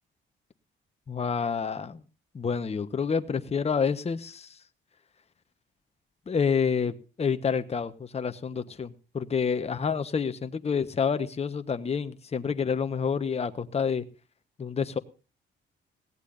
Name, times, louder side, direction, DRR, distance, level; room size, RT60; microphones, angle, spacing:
voice 1, 1.1-2.0 2.3-4.6 6.3-14.0 14.6-15.0, left 6 dB, 30° left, 9 dB, 1.1 m, -28 dB
20.5 x 16.5 x 2.6 m, 0.33 s
cardioid pair, 90°, 20 cm